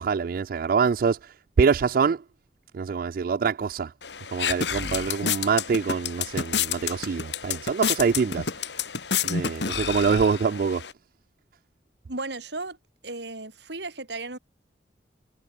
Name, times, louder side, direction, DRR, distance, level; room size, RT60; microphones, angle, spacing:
voice 1, 0.0-2.2 2.7-3.9 4.3-8.5 9.2-10.8, right 5 dB, 50° right, 0.3 m, -25 dB
sound 1, 4.0-10.9, left 7 dB, 75° left, 2.1 m, -30 dB
voice 2, 12.1-12.8 13.0-14.4, right 2 dB, 70° right, 4.7 m, -35 dB
head